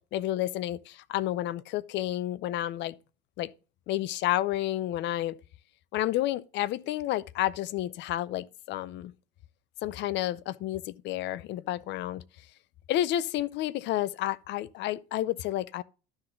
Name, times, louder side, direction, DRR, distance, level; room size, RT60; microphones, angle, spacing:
voice 1, 0.0-3.0 3.4-3.5 3.9-5.4 5.9-9.1 9.8-12.2 12.9-15.8, left 14 dB, 60° left, 0.6 m, -30 dB
12.0 x 4.0 x 5.7 m
supercardioid pair, 90°, 21 cm